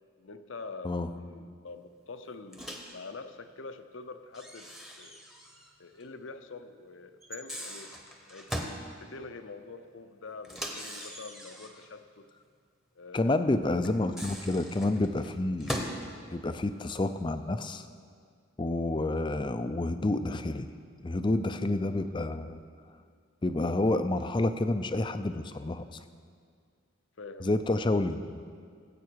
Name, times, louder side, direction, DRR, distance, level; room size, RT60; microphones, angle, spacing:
voice 1, 0.2-4.7 5.0-5.2 5.8-7.9 8.3-8.7 9.0-12.3 13.0-13.4 27.2-27.6, left 3 dB, 65° left, 9 dB, 0.7 m, -45 dB
Microwave oven, 2.5-3.0 4.3-5.7 6.0-6.1 7.2-8.8 10.4-11.9 13.8-16.0, equal, ahead, 1.0 m, -40 dB
voice 2, 13.1-17.9 18.6-20.7 21.0-22.6 23.4-26.0 27.4-28.4, left 2 dB, 25° left, 10 dB, 0.4 m, -29 dB
17.5 x 8.3 x 4.6 m, 2.1 s
head